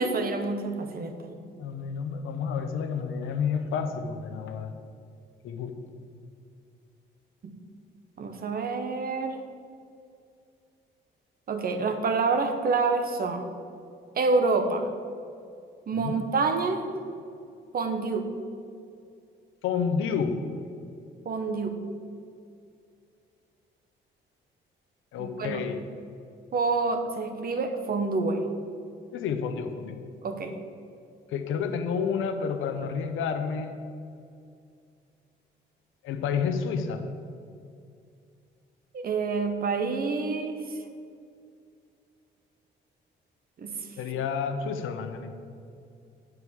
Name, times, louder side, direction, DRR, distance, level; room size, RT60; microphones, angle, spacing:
voice 1, 0.0-1.5 7.4-7.6 8.2-9.4 11.5-13.5 14.2-14.9 15.9-16.9 17.7-18.3 21.2-21.8 25.2-25.6 26.5-28.4 30.2-30.5 38.9-40.8 43.6-43.8, right 4 dB, 50° right, 7 dB, 1.0 m, -27 dB
voice 2, 1.6-4.7 5.4-5.7 15.9-16.2 19.6-20.4 25.1-25.8 29.1-30.0 31.3-33.7 36.0-37.0 44.0-45.3, left 6 dB, 80° left, 7 dB, 0.8 m, -30 dB
8.0 x 4.7 x 7.2 m, 2.4 s
cardioid pair, 90°, 20 cm